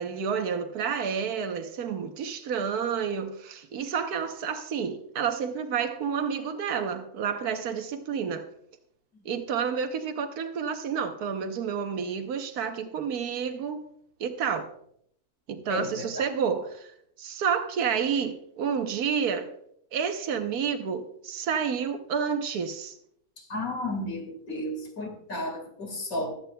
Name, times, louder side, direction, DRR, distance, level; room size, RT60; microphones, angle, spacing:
voice 1, 0.0-8.5 9.2-13.9 14.2-14.7 15.5-16.9 17.2-19.5 19.9-23.0, right 7 dB, 85° right, 1.5 m, -30 dB
voice 2, 15.7-16.3 23.4-26.3, left 1 dB, 65° left, 2.6 m, -33 dB
16.0 x 13.0 x 2.3 m
omnidirectional pair, 1.6 m